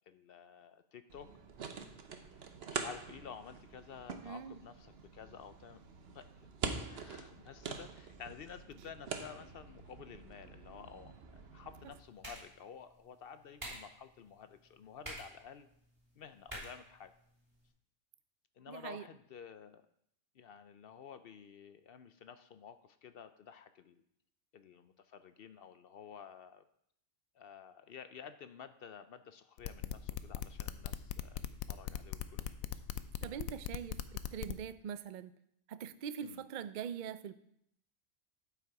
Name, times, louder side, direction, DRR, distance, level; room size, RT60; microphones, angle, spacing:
voice 1, 0.1-1.3 2.1-2.5 2.7-5.8 6.1-6.6 6.9-15.7 16.1-17.1 18.6-19.8 20.4-24.0 24.5-26.6 27.3-31.4 31.7-32.8 33.3-33.4 36.2-36.4, left 7 dB, 60° left, 11 dB, 0.6 m, -52 dB
sound 1, 1.1-12.0, right 5 dB, 55° right, 1.0 m, -45 dB
voice 2, 4.2-4.6 18.7-19.0 33.2-34.0 34.3-35.3 35.7-37.3, right 8 dB, 75° right, 13 dB, 0.4 m, -42 dB
sound 2, 11.7-17.7, right 1 dB, 20° right, 3.4 m, -51 dB
sound 3, 29.6-34.5, left 11 dB, 85° left, 1.0 m, -39 dB
11.5 x 5.8 x 4.7 m, 0.72 s
omnidirectional pair, 1.4 m